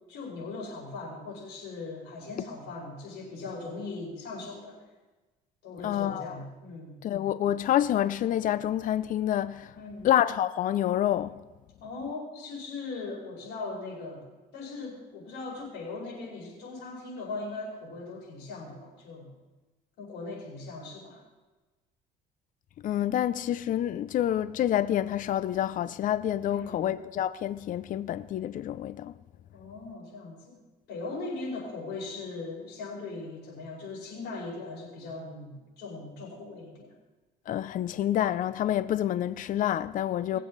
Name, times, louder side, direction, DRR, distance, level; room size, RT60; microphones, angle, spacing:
voice 1, 0.1-4.8 5.6-7.0 9.7-10.1 11.8-14.2 14.5-19.3 20.0-21.2 26.5-26.9 29.5-30.6 30.9-36.9 40.3-40.4, left 3 dB, 85° left, 5.2 m, -39 dB
voice 2, 5.8-6.4 7.0-9.7 10.0-11.4 22.8-29.1 37.5-40.4, left 11 dB, 50° left, 0.5 m, -28 dB
20.0 x 7.7 x 4.0 m
cardioid pair, 110°, 17 cm